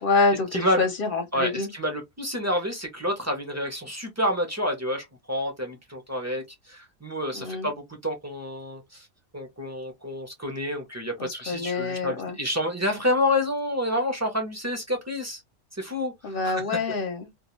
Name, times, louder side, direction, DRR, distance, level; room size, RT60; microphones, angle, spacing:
voice 1, 0.0-1.7 7.3-7.7 11.2-12.4 16.2-17.3, left 3 dB, 55° left, 0.7 m, -26 dB
voice 2, 0.5-0.9 1.3-9.1 9.3-15.4 15.8-16.6, left 1 dB, 20° right, 0.4 m, -29 dB
2.3 x 2.2 x 2.9 m
omnidirectional pair, 1.3 m